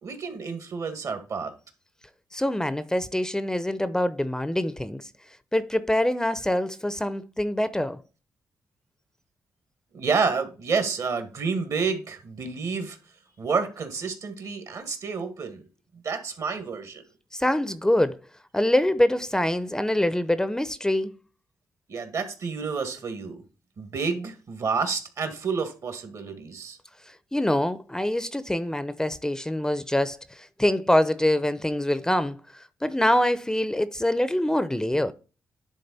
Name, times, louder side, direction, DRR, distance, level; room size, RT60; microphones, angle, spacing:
voice 1, 0.0-1.5 9.9-13.0 13.4-15.6 16.0-17.0 21.9-23.4 23.8-26.8, right 5 dB, 65° right, 1.8 m, -29 dB
voice 2, 2.3-5.1 5.5-8.0 17.3-18.2 18.5-21.1 27.1-35.1, left 1 dB, 10° left, 0.6 m, -25 dB
10.0 x 3.8 x 4.1 m
cardioid pair, 70°, 6 cm